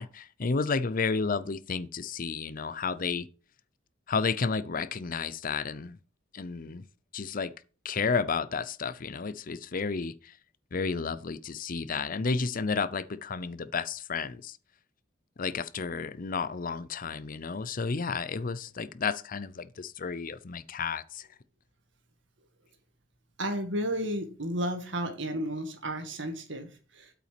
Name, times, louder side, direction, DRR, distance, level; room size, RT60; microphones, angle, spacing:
voice 1, 0.0-3.3 4.1-6.0 6.3-6.8 7.1-7.5 7.8-10.1 10.7-14.5 15.4-21.2, left 5 dB, 45° left, 0.6 m, -32 dB
voice 2, 23.4-27.1, right 1 dB, 70° right, 2.0 m, -33 dB
8.4 x 5.9 x 5.9 m
head